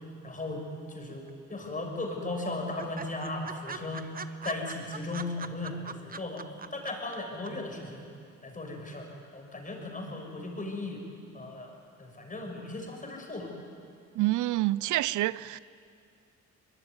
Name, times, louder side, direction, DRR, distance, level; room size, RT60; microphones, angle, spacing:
voice 1, 0.2-0.6 0.9-6.4 6.7-8.1 8.4-11.0 11.3-13.5, left 2 dB, 25° left, 6.4 m, -37 dB
sound 1, 1.1-1.7 2.0-2.1 2.4-2.5 2.8-7.2 7.5-7.6, right 5 dB, 30° right, 1.1 m, -41 dB
voice 2, 14.1-15.6, right 17 dB, 80° right, 0.5 m, -27 dB
23.0 x 22.5 x 9.7 m
cardioid pair, 90°, 30 cm